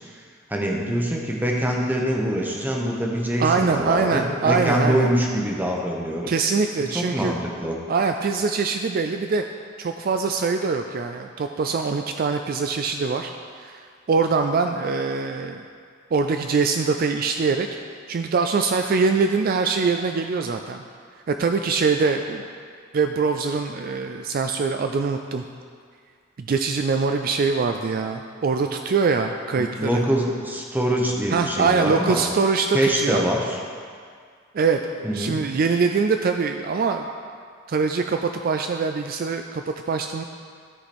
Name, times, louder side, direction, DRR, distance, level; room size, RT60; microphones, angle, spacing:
voice 1, 0.5-6.3 6.9-7.7 29.6-32.2 32.7-33.6 35.0-35.4, equal, 10° right, -1 dB, 0.9 m, -24 dB
voice 2, 3.4-5.1 6.3-7.3 7.9-9.4 9.8-13.3 13.6-15.6 16.1-17.7 18.1-20.8 21.3-22.5 22.9-25.4 26.4-30.0 31.3-33.3 34.5-37.1 37.7-40.2, right 4 dB, 45° right, 5 dB, 0.3 m, -23 dB
13.5 x 4.9 x 4.3 m, 2.1 s
head